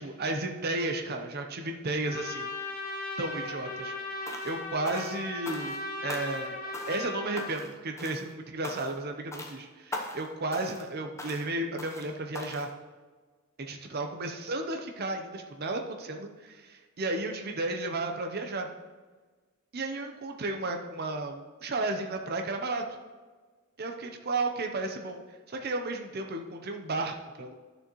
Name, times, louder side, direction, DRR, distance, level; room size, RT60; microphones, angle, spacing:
voice 1, 0.0-2.5 3.2-3.9 4.2-5.8 6.0-6.6 6.9-12.7 13.6-18.7 19.7-22.8 23.8-25.2 25.5-27.5, right 2 dB, 50° right, 4 dB, 0.7 m, -33 dB
Trumpet, 2.0-7.5, left 2 dB, 45° left, 1.5 m, -37 dB
sound 1, 4.3-4.6 4.9-5.8 6.1-6.5 6.7-7.1 7.4-7.7 8.0-8.3 8.6-9.0 9.3-9.6 9.9-10.3 10.5-10.9 11.2-11.5 11.8-12.1 12.3-12.7, left 2 dB, 15° left, 0.8 m, -40 dB
11.0 x 6.5 x 3.1 m, 1.3 s
head